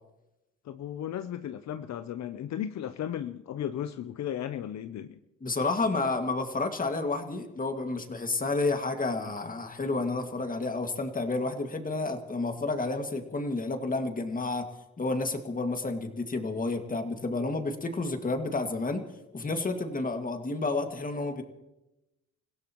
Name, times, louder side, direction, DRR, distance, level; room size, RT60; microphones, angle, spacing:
voice 1, 0.6-5.2, left 10 dB, 65° left, 10 dB, 0.7 m, -35 dB
voice 2, 5.4-14.7 15.0-19.0 19.3-21.4, left 3 dB, 30° left, 5 dB, 2.1 m, -30 dB
29.0 x 16.5 x 3.1 m, 0.95 s
cardioid pair, 90°, 30 cm